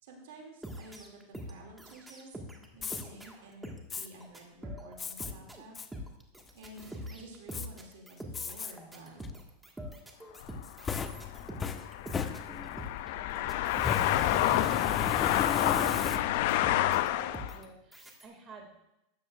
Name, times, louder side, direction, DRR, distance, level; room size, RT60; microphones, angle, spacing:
voice 1, 0.0-5.8 6.5-9.3, right 2 dB, 75° right, 1 dB, 2.4 m, -51 dB
sound 1, 0.6-2.7 2.9-18.3, equal, 10° right, 1.6 m, -44 dB
Fire, 2.7-3.0 3.9-4.1 5.0-5.3 5.7-5.9 6.4-6.8 7.5-7.7 8.3-8.7 9.2-9.3 10.4-12.8 13.7-16.6, left 6 dB, 25° left, 0.7 m, -35 dB
sound 2, 10.4-17.6, left 14 dB, 65° left, 0.4 m, -29 dB
voice 2, 13.3-13.7 16.8-18.8, right 4 dB, 35° right, 1 dB, 2.1 m, -52 dB
13.0 x 9.8 x 2.5 m, 0.91 s
hypercardioid pair, 105°, 0 cm